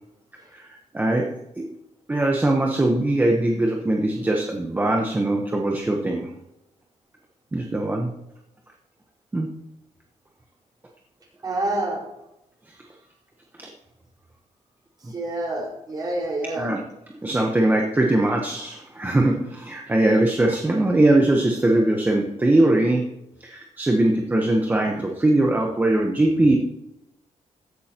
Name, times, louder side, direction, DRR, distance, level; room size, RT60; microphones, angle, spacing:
voice 1, 0.5-1.7 2.1-6.3 7.5-8.1 9.3-9.5 13.6-13.7 15.0-15.1 16.5-16.8 17.2-23.1 23.4-26.6, right 1 dB, 15° right, 0 dB, 1.0 m, -21 dB
voice 2, 11.4-12.0 15.1-16.7, right 2 dB, 30° right, -3 dB, 4.7 m, -27 dB
15.0 x 11.0 x 2.9 m, 0.90 s
wide cardioid pair, 150°, 13 cm